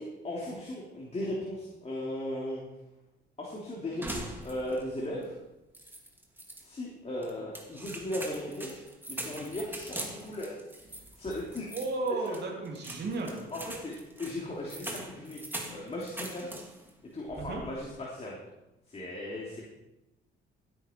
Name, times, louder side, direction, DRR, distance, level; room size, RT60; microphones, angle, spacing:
voice 1, 0.0-2.6 3.4-5.3 6.6-8.8 9.1-10.5 11.1-11.8 12.3-12.4 13.5-15.4 15.7-16.5 17.1-18.4 18.9-19.6, left 1 dB, 30° left, -4 dB, 3.1 m, -37 dB
sound 1, 4.0-4.9 5.2-5.3 5.7-6.6 7.2-16.9 17.3-17.8, right 1 dB, 10° right, 2.4 m, -42 dB
voice 2, 11.7-13.5 17.4-17.6, right 3 dB, 60° right, 0 dB, 2.8 m, -34 dB
15.0 x 9.0 x 4.5 m, 0.97 s
cardioid pair, 90°, 20 cm